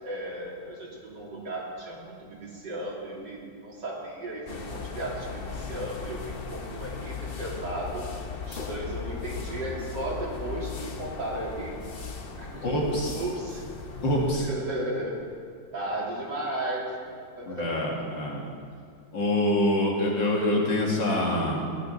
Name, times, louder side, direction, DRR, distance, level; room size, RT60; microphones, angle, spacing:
voice 1, 0.0-6.2 6.5-8.0 8.4-11.8 12.4-12.8 13.1-13.6 14.4-15.2 15.7-18.3, right 1 dB, 65° right, -5 dB, 3.5 m, -35 dB
sound 1, 4.5-14.4, left 5 dB, 45° left, 0.8 m, -37 dB
voice 2, 12.6-13.2 14.0-14.5 17.4-18.4 19.1-21.6, left 1 dB, 70° left, -2 dB, 2.9 m, -25 dB
15.0 x 10.5 x 5.4 m, 2.2 s
omnidirectional pair, 2.1 m